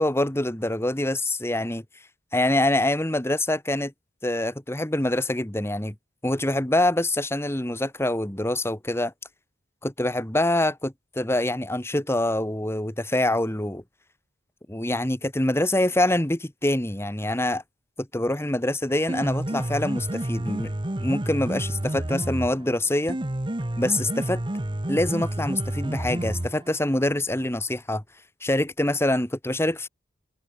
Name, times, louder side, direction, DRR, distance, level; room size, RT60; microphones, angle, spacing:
voice 1, 0.0-1.8 2.3-3.9 4.2-5.9 6.2-9.1 9.8-13.8 14.7-17.6 18.0-20.7 21.0-23.2 23.8-24.4 24.9-28.0 28.4-29.9, left 1 dB, 15° left, 1.6 m, -25 dB
Piano, 18.9-26.9, right 1 dB, 25° right, 1.1 m, -30 dB
head